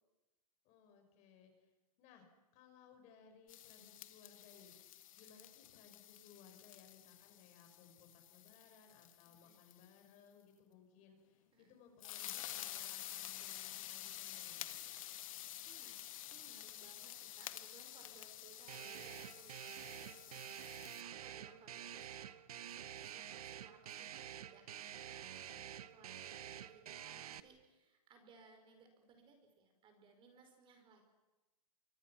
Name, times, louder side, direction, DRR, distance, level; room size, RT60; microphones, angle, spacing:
voice 1, 0.6-1.7 2.0-2.3 2.5-14.8, left 7 dB, 35° left, 5 dB, 5.9 m, -63 dB
sound 1, 3.5-9.9 12.0-21.0, left 13 dB, 60° left, 1.8 m, -50 dB
voice 2, 11.5-11.8 15.7-16.0 16.3-22.3 22.7-31.0, right 4 dB, 25° right, 6 dB, 4.6 m, -64 dB
sound 2, 18.7-27.4, right 10 dB, 75° right, 1.3 m, -49 dB
27.5 x 24.5 x 6.0 m, 1.1 s
hypercardioid pair, 135°, 19 cm